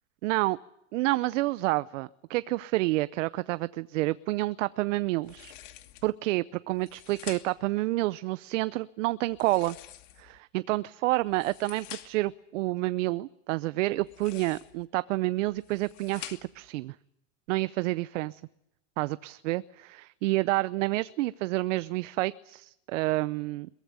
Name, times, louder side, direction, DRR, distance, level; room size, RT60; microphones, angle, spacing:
voice 1, 0.2-0.6 0.9-5.5 6.0-9.8 10.2-17.0 17.5-18.4 19.0-23.7, right 19 dB, 75° right, 16 dB, 0.8 m, -29 dB
sound 1, 5.2-6.1 6.7-7.7 9.3-10.4 11.2-12.3 14.0-14.9 15.5-16.7, left 13 dB, 80° left, 2.7 m, -47 dB
22.5 x 18.0 x 9.5 m, 0.82 s
supercardioid pair, 115°, 37 cm